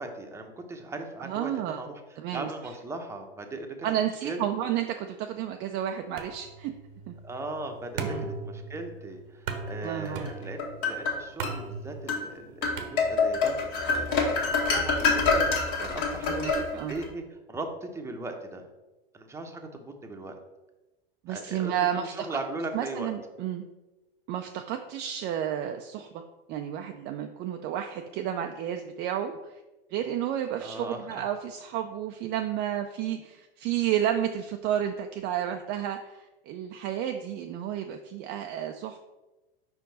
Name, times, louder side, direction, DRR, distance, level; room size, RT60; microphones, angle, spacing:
voice 1, 0.0-2.0 2.3-3.9 4.2-4.4 7.2-18.6 19.1-20.3 21.3-23.1 30.6-31.2, right 2 dB, 10° right, 3 dB, 0.8 m, -38 dB
voice 2, 1.2-1.8 2.2-2.5 3.8-6.7 7.1-7.2 8.0-8.3 9.8-10.3 16.3-16.9 21.2-22.4 22.7-23.7 24.3-26.2 26.5-29.6 29.9-39.0, right 10 dB, 35° right, 5 dB, 0.4 m, -31 dB
sound 1, 6.2-13.5, right 4 dB, 70° right, 0.9 m, -39 dB
sound 2, 10.3-11.6 12.1-12.3 12.6-17.1, left 4 dB, 55° left, 1.6 m, -26 dB
5.2 x 4.6 x 4.0 m, 1.1 s
hypercardioid pair, 105°, 29 cm